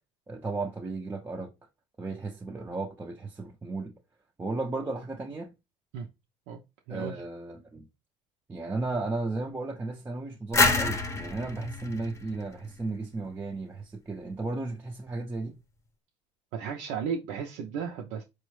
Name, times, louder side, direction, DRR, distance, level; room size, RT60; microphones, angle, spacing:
voice 1, 0.3-1.5 2.0-4.0 4.4-5.5 6.9-7.9 8.5-15.6, right 3 dB, 15° right, 0.5 m, -34 dB
sound 1, 10.5-13.2, left 3 dB, 20° left, 0.7 m, -27 dB
voice 2, 16.5-18.2, right 7 dB, 75° right, 0.6 m, -34 dB
4.5 x 2.1 x 3.1 m
supercardioid pair, 95°, 13 cm